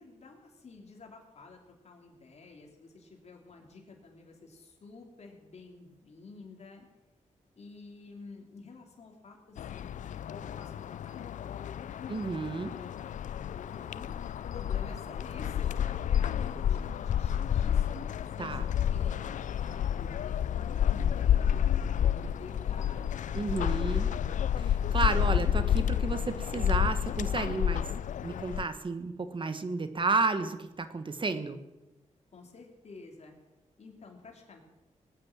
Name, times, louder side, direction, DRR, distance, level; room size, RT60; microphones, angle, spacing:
voice 1, 0.0-6.9 7.5-12.1 12.7-12.9 13.5-14.1 14.5-19.2 19.6-24.4 32.3-33.3 33.8-34.6, left 3 dB, 60° left, 0 dB, 3.0 m, -50 dB
sound 1, 9.6-28.6, left 9 dB, 85° left, 0.4 m, -30 dB
voice 2, 12.1-12.7 18.4-18.7 23.3-24.1 24.9-27.9 28.2-31.6, right 3 dB, 40° right, 10 dB, 1.3 m, -32 dB
19.0 x 9.0 x 7.4 m, 1.0 s
cardioid pair, 85°, 13 cm